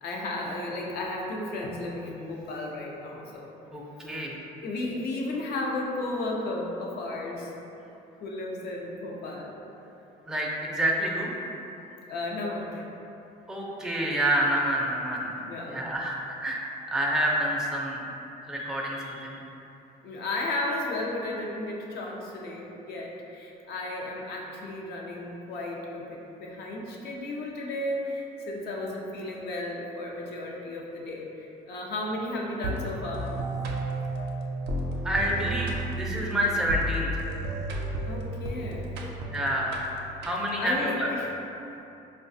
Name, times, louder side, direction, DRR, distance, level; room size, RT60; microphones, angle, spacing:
voice 1, 0.0-3.5 4.6-7.5 8.2-9.6 12.1-12.8 15.5-15.8 20.0-33.3 38.0-38.9 40.3-41.3, left 2 dB, 70° left, -2 dB, 0.6 m, -34 dB
voice 2, 3.7-4.4 10.3-11.3 13.5-15.3 15.7-18.0 18.4-19.4 35.0-37.2 39.3-39.8 40.2-41.1, right 1 dB, 5° right, -3 dB, 0.4 m, -28 dB
sound 1, 32.6-40.7, right 1 dB, 85° right, 0.5 m, -33 dB
4.7 x 2.2 x 2.6 m, 2.9 s
cardioid pair, 110°, 17 cm